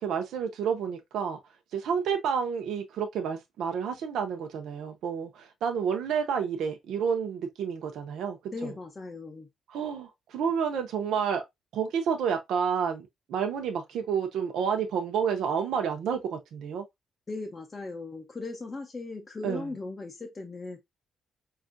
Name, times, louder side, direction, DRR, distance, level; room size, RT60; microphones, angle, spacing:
voice 1, 0.0-1.4 1.7-8.4 8.6-8.7 9.7-11.4 11.7-16.8 19.4-19.7, right 7 dB, 85° right, 0.6 m, -30 dB
voice 2, 8.5-9.5 17.3-20.8, left 3 dB, 20° left, 0.5 m, -38 dB
5.2 x 2.4 x 2.5 m
cardioid pair, 180°, 0 cm